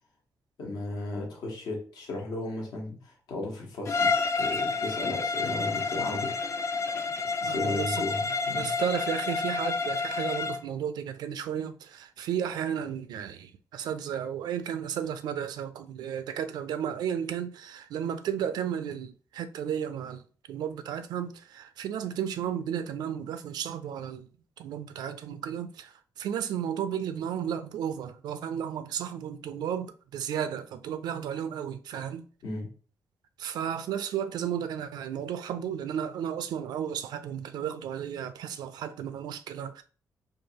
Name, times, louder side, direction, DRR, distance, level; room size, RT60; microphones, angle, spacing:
voice 1, 0.6-6.3 7.4-8.7 32.4-32.7, left 2 dB, 80° left, 1.3 m, -35 dB
Bowed string instrument, 3.8-10.7, left 4 dB, 45° left, 0.4 m, -29 dB
voice 2, 7.5-8.1 8.5-24.3 24.6-32.2 33.4-39.8, right 9 dB, 90° right, 0.4 m, -33 dB
4.6 x 2.6 x 2.8 m
cardioid pair, 135°, 7 cm